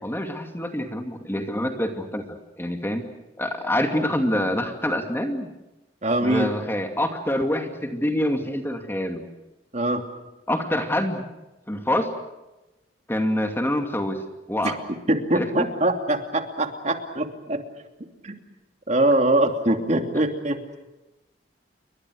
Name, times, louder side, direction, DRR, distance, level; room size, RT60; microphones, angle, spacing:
voice 1, 0.0-3.0 3.4-5.5 6.2-9.2 10.5-11.2 11.7-12.1 13.1-14.8 15.3-15.7, left 1 dB, 15° left, 5 dB, 2.4 m, -26 dB
voice 2, 6.0-6.5 9.7-10.1 14.6-14.8 15.1-17.6 18.2-18.4 18.9-20.6, right 1 dB, 40° right, 5 dB, 2.9 m, -23 dB
29.5 x 24.0 x 6.4 m, 1.0 s
head